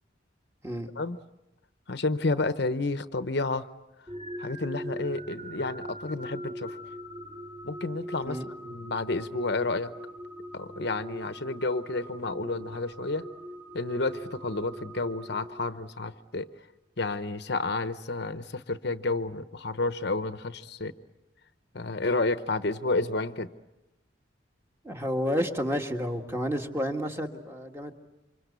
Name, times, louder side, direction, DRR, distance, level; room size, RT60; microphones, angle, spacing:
voice 1, 1.9-3.7 4.4-6.8 7.6-8.4 8.6-9.9 10.5-13.2 13.7-16.5 17.0-20.9 21.7-23.5, left 3 dB, 60° left, 11 dB, 0.9 m, -30 dB
sound 1, 4.1-16.0, equal, 30° right, 2.8 m, -41 dB
voice 2, 24.8-27.9, equal, 15° right, 3 dB, 1.8 m, -30 dB
28.5 x 25.5 x 8.2 m, 0.97 s
head